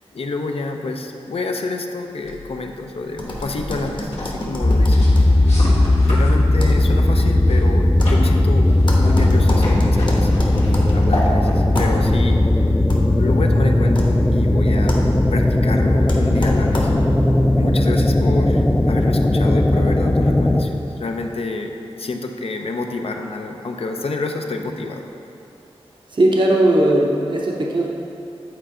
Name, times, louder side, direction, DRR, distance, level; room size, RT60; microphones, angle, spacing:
voice 1, 0.1-5.6 6.1-12.8 13.2-15.0 15.3-16.9 17.5-21.7 22.0-25.0, left 3 dB, 65° left, 3 dB, 0.5 m, -28 dB
sound 1, 2.2-13.3, left 1 dB, 90° left, 1.4 m, -33 dB
sound 2, 3.2-17.2, left 1 dB, 45° left, 1.0 m, -30 dB
sound 3, 4.6-20.6, left 1 dB, 10° left, 0.4 m, -16 dB
voice 2, 26.1-27.9, right 1 dB, 45° right, -2 dB, 0.8 m, -17 dB
9.0 x 4.3 x 3.7 m, 2.7 s
wide cardioid pair, 65°, 11 cm